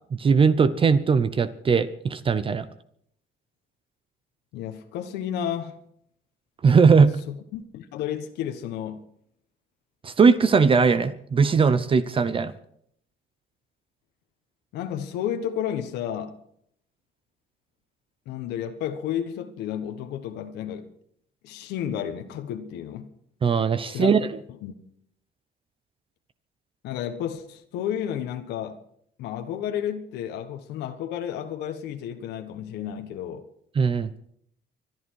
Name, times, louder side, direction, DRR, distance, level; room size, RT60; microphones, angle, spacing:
voice 1, 0.2-2.7 6.6-7.1 10.0-12.5 23.4-24.3 33.8-34.1, right 5 dB, 30° right, 0.8 m, -19 dB
voice 2, 4.5-5.8 7.3-9.1 14.7-16.4 18.3-20.9 21.4-23.1 23.8-24.1 24.6-24.7 26.8-28.8 29.2-33.4, left 9 dB, 85° left, 1.3 m, -32 dB
24.5 x 11.0 x 4.7 m
cardioid pair, 110°, 17 cm